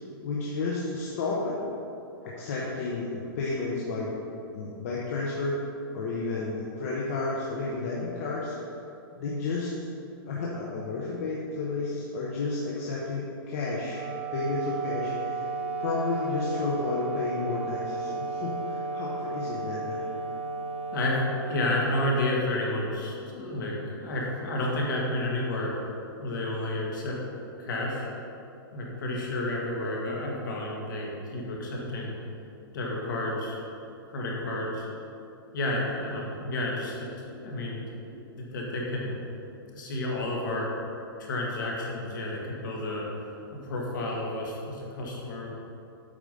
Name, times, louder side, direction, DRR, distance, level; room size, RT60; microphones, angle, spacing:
voice 1, 0.2-1.6 2.2-4.1 4.5-5.6 5.9-8.5 9.2-9.9 10.3-14.0 14.3-15.4 15.8-20.0, left 3 dB, 40° left, -5 dB, 1.0 m, -31 dB
Wind instrument woodwind instrument, 13.6-22.9, right 4 dB, 30° right, 0.4 m, -34 dB
voice 2, 20.9-25.7 26.2-27.2 27.6-28.1 28.7-32.1 32.7-33.6 34.1-34.9 35.5-39.1 39.7-40.7 41.2-43.1 43.5-45.5, left 1 dB, 55° left, -2 dB, 1.9 m, -31 dB
8.6 x 5.0 x 5.3 m, 2.8 s
hypercardioid pair, 175°, 12 cm